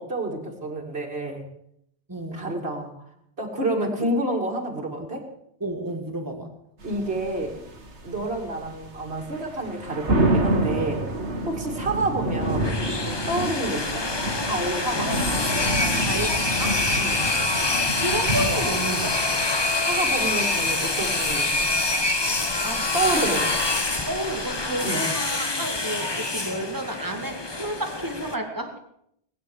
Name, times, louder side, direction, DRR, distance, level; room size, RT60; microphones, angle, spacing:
voice 1, 0.0-1.4 2.3-2.9 3.4-5.2 6.8-7.5 8.0-11.0 11.5-12.8 13.3-14.0 14.4-15.1 17.0-17.2 19.8-21.7 22.9-23.5 24.8-25.0, right 2 dB, 60° right, 0 dB, 2.9 m, -28 dB
voice 2, 2.1-2.4 3.8-4.1 5.6-6.5 15.9-16.9 17.9-19.4 22.6-22.9 24.1-28.8, right 1 dB, 20° right, 4 dB, 2.1 m, -31 dB
sound 1, 6.8-24.7, right 1 dB, 85° right, 2.2 m, -30 dB
sound 2, 12.4-28.3, left 2 dB, 25° left, 1.0 m, -26 dB
20.0 x 9.5 x 7.2 m, 0.73 s
omnidirectional pair, 1.1 m